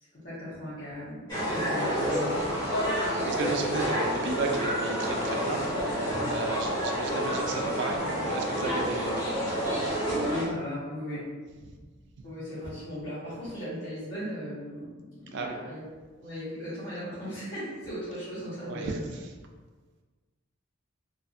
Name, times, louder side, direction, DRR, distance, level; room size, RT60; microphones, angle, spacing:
voice 1, 0.2-2.9 10.2-11.3 12.2-15.8 16.2-19.0, equal, 45° left, -14 dB, 1.0 m, -37 dB
sound 1, 1.3-10.5, equal, 25° left, 1.1 m, -29 dB
voice 2, 3.3-5.6 6.3-10.1 11.1-11.2 15.3-15.6 18.6-19.0, right 3 dB, 55° right, 3 dB, 0.3 m, -34 dB
2.5 x 2.5 x 2.5 m, 1.4 s
head